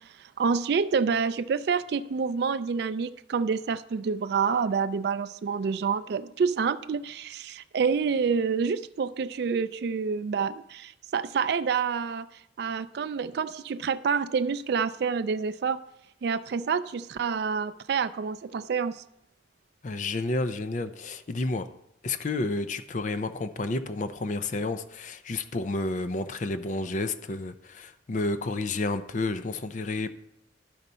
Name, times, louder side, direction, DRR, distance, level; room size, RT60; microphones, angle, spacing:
voice 1, 0.2-12.3 12.6-15.8 16.2-19.0, right 5 dB, 55° right, 0.3 m, -28 dB
voice 2, 19.8-21.7 22.0-30.1, left 2 dB, 40° left, 0.5 m, -30 dB
12.0 x 4.0 x 5.5 m
head